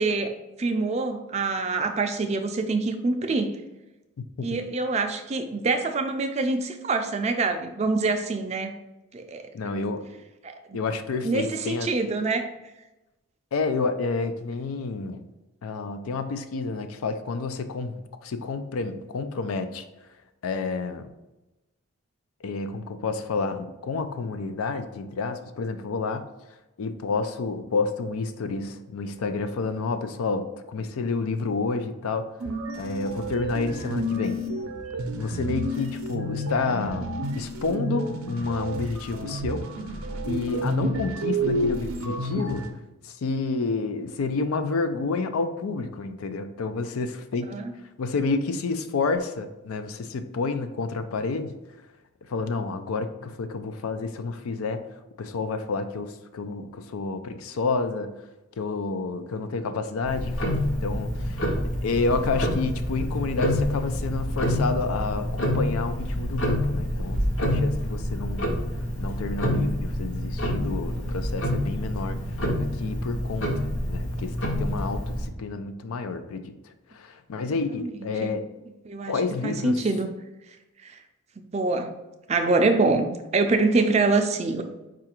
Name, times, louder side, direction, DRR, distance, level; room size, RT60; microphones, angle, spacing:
voice 1, 0.0-3.6 4.4-8.7 9.1-9.8 10.7-10.8 11.2-12.5 47.5-47.7 77.8-77.9 78.2-78.3 78.9-80.1 80.8-81.0 81.4-81.9 82.3-83.1 83.3-84.6, right 3 dB, 30° right, 6 dB, 0.3 m, -25 dB
voice 2, 9.5-10.0 10.7-11.9 13.5-15.2 15.6-18.0 18.2-19.9 20.4-21.1 22.4-26.3 26.8-32.3 32.8-34.4 35.1-39.6 40.3-42.7 43.0-47.5 48.0-51.6 52.3-54.8 55.2-58.1 58.6-61.5 61.8-68.5 69.0-72.2 72.6-78.5 79.1-79.8, left 4 dB, 90° left, 9 dB, 0.4 m, -29 dB
sound 1, 32.4-42.7, right 1 dB, 85° right, 0.5 m, -30 dB
Tick-tock, 60.0-75.3, equal, 60° left, 0.9 m, -27 dB
4.7 x 2.5 x 4.3 m, 1.0 s
head